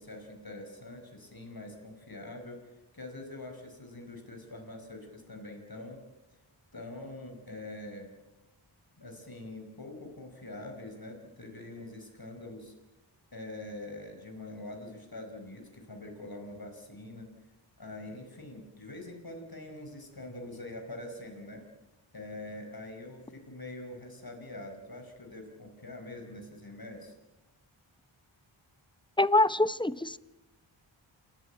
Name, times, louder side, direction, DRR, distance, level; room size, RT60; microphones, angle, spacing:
voice 1, 0.0-6.0 6.7-8.1 9.0-12.7 13.3-17.3 17.8-21.6 22.1-27.1, left 2 dB, 45° left, 2 dB, 4.9 m, -44 dB
voice 2, 29.2-30.2, left 2 dB, 10° left, 16 dB, 0.8 m, -25 dB
28.5 x 15.0 x 9.1 m, 1.0 s
wide cardioid pair, 45°, 49 cm